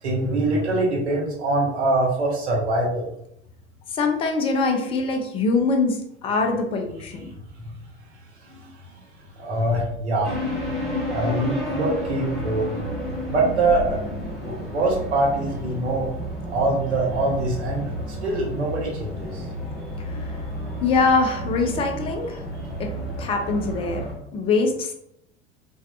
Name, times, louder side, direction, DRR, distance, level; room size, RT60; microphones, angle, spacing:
voice 1, 0.0-3.1 8.5-8.7 9.4-10.4 11.1-12.7 13.3-14.0 14.4-16.1 16.5-19.4, right 2 dB, 75° right, -2 dB, 0.7 m, -24 dB
voice 2, 3.9-7.3 20.1-20.3 20.8-22.4 22.8-22.9 23.2-24.0 24.3-24.9, left 4 dB, 20° left, 3 dB, 0.3 m, -23 dB
sound 1, 10.2-24.1, equal, ahead, 1.0 m, -31 dB
3.3 x 2.2 x 2.3 m, 0.76 s
figure-of-eight pair, 75°, 33 cm